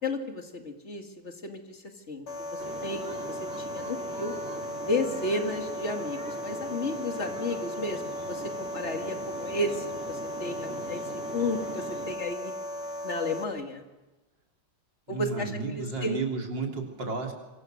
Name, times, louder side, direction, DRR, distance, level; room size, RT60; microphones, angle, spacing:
voice 1, 0.0-4.3 4.9-12.5 13.0-13.8 15.1-16.2, left 2 dB, 40° left, 4 dB, 2.5 m, -33 dB
sound 1, 2.3-13.4, left 1 dB, 70° left, 1.9 m, -37 dB
sound 2, 2.6-12.1, right 2 dB, 35° right, 3.4 m, -42 dB
voice 2, 15.1-17.3, right 4 dB, 85° right, 1 dB, 4.2 m, -32 dB
26.0 x 24.0 x 6.5 m, 1.1 s
omnidirectional pair, 1.9 m